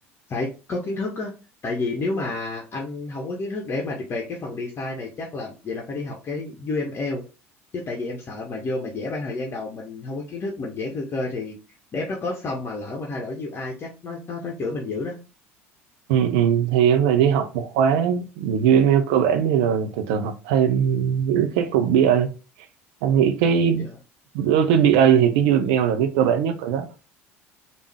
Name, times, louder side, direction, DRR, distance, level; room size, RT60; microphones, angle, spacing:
voice 1, 0.3-1.3 1.6-7.2 7.7-11.6 11.9-15.2 23.8-23.9, left 3 dB, 35° left, 0.8 m, -30 dB
voice 2, 16.1-22.3 23.0-23.9 24.3-26.9, right 8 dB, 65° right, 0.6 m, -20 dB
3.5 x 2.5 x 3.3 m
figure-of-eight pair, 65°, 7 cm